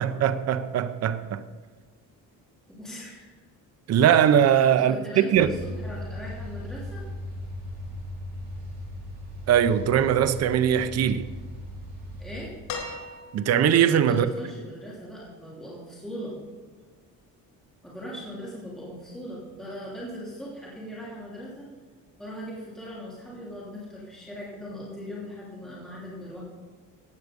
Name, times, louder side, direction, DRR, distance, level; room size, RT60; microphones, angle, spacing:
voice 1, 0.0-1.4 3.9-5.0 5.3-5.5 9.5-11.3 13.3-14.3, right 9 dB, 45° right, 0.6 m, -21 dB
voice 2, 2.7-3.3 4.8-7.0 12.2-12.6 14.1-16.4 17.8-21.7 22.2-26.4, equal, ahead, 3.0 m, -39 dB
sound 1, 5.3-12.4, left 1 dB, 25° right, 3.8 m, -38 dB
sound 2, 12.7-13.7 15.2-15.3, left 4 dB, 85° left, 3.7 m, -37 dB
15.5 x 9.4 x 5.2 m
cardioid pair, 150°, 35 cm